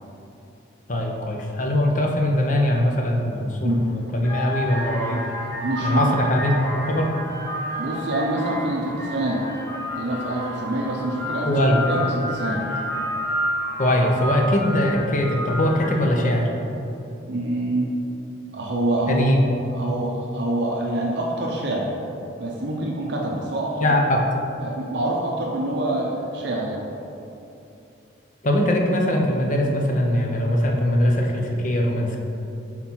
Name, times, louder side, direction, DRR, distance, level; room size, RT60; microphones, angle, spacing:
voice 1, 0.9-5.2 5.8-7.1 11.5-11.8 13.8-16.5 19.1-19.4 23.8-24.2 28.4-32.2, left 1 dB, 40° left, 1 dB, 0.7 m, -21 dB
sound 1, 3.6-3.7 4.2-16.3, equal, 15° left, 1.4 m, -30 dB
voice 2, 5.6-6.1 7.8-9.4 9.9-12.6 17.3-17.9 18.5-19.3 19.7-21.9 22.4-23.9 24.6-26.8, right 1 dB, 60° right, -2 dB, 0.6 m, -26 dB
4.3 x 4.3 x 5.6 m, 2.8 s
head